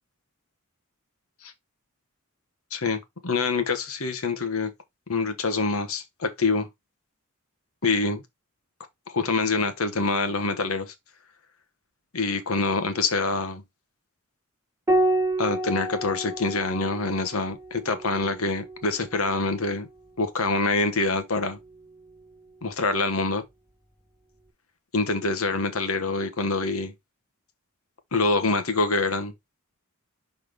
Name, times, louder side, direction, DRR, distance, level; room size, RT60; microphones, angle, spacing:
voice 1, 2.7-4.7 5.1-6.7 7.8-8.2 9.1-10.9 12.1-13.6 15.4-19.9 20.2-21.6 22.6-23.4 24.9-26.9 28.1-29.3, left 3 dB, 80° left, 1.3 m, -25 dB
Piano, 14.9-19.7 21.4-22.2, right 1 dB, 15° right, 1.2 m, -29 dB
5.6 x 4.2 x 5.1 m
head